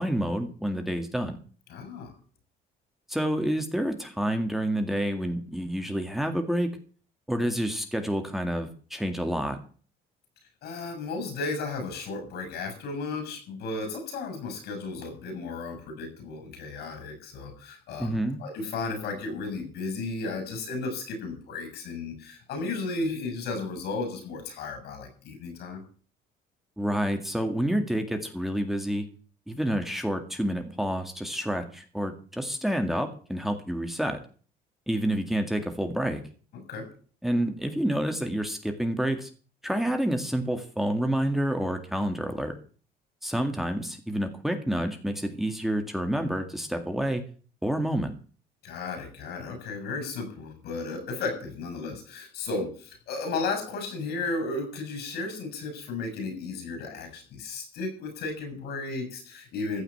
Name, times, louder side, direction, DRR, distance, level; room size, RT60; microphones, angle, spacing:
voice 1, 0.0-1.4 3.1-6.7 7.3-9.6 18.0-18.4 26.8-29.1 29.5-34.2 34.9-36.2 37.2-39.3 39.6-42.6 43.2-47.2 47.6-48.1, right 1 dB, ahead, 5 dB, 2.0 m, -28 dB
voice 2, 1.7-2.1 10.6-25.8 36.7-36.9 48.6-59.8, left 3 dB, 75° left, 7 dB, 7.1 m, -34 dB
15.0 x 5.7 x 9.7 m, 0.41 s
cardioid pair, 110°, 17 cm